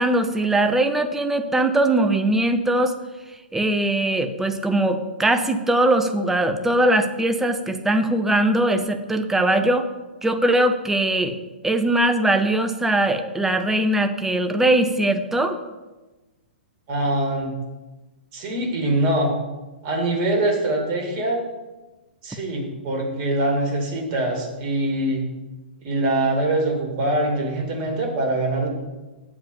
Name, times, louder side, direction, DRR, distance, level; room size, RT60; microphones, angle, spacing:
voice 1, 0.0-2.9 3.5-9.9 10.2-11.4 11.6-15.6, right 1 dB, 5° right, 7 dB, 0.7 m, -21 dB
voice 2, 16.9-17.6 18.3-19.3 19.8-21.4 22.2-25.3 25.8-28.7, right 1 dB, 35° right, 0 dB, 2.5 m, -23 dB
7.4 x 4.9 x 7.3 m, 1.1 s
figure-of-eight pair, 115°, 6 cm